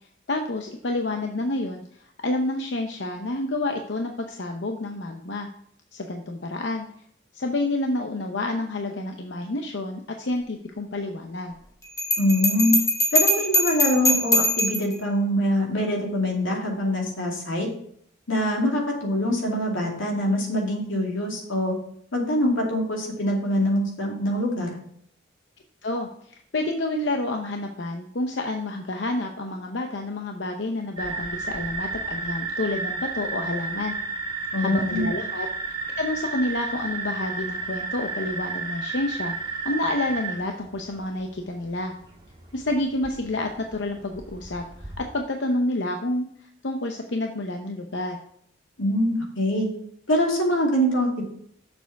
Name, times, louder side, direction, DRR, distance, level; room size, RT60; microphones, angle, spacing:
voice 1, 0.3-5.5 5.9-6.9 7.3-11.5 25.8-34.0 34.6-35.5 36.0-41.9 42.5-46.3 46.6-48.2, left 2 dB, 60° left, 3 dB, 0.7 m, -29 dB
Bell, 12.0-14.9, left 1 dB, 15° left, 1.3 m, -22 dB
voice 2, 12.2-12.8 13.1-17.7 18.3-21.7 22.1-24.8 34.5-35.1 48.8-49.7 50.1-51.2, equal, 85° left, 0 dB, 2.4 m, -24 dB
Toad orgy, 31.0-45.0, right 4 dB, 25° right, 1.4 m, -33 dB
6.9 x 6.9 x 4.6 m, 0.66 s
head